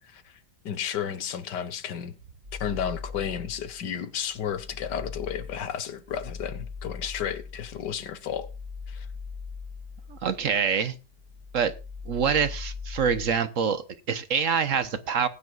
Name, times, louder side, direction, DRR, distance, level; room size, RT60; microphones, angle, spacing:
voice 1, 0.6-2.1 2.6-8.5 8.9-9.1, left 8 dB, 85° left, 1.7 m, -32 dB
sound 1, 2.4-3.9 4.3-10.8 11.1-13.4, left 5 dB, 75° right, 7.7 m, -40 dB
voice 2, 10.1-11.0 11.5-11.7 12.1-15.3, right 6 dB, 55° right, 1.1 m, -25 dB
19.5 x 9.4 x 2.4 m
omnidirectional pair, 1.8 m